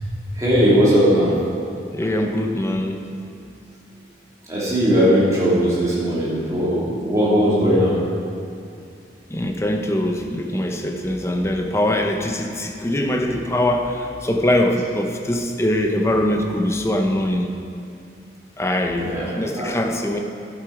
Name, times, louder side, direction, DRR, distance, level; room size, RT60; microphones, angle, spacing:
voice 1, 0.3-1.3 4.5-8.0 18.9-19.7, equal, 20° right, -9 dB, 2.8 m, -18 dB
voice 2, 1.9-3.1 9.3-17.5 18.6-20.2, left 1 dB, 15° left, 3 dB, 0.7 m, -22 dB
11.0 x 7.1 x 4.9 m, 2.5 s
head